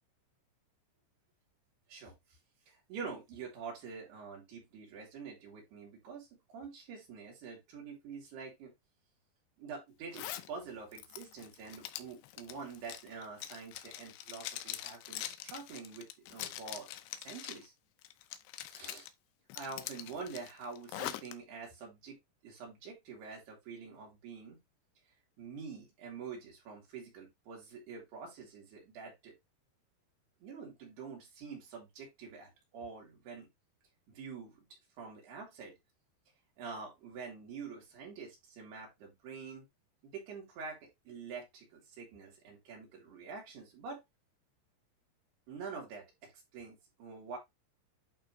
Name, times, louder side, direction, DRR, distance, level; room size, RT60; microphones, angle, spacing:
voice 1, 2.7-8.7 9.6-16.9 17.2-17.7 18.7-19.1 19.6-22.2 22.4-24.6 25.4-29.3 30.4-33.5 34.1-34.7 35.0-35.7 36.6-39.6 40.0-44.0 45.5-46.1 46.5-47.4, right 5 dB, 65° right, 4.9 m, -46 dB
Zipper (clothing), 10.1-10.5 10.9-17.7 18.0-19.1 19.5-21.3, left 13 dB, 85° left, 2.7 m, -43 dB
11.0 x 3.8 x 3.1 m
omnidirectional pair, 5.2 m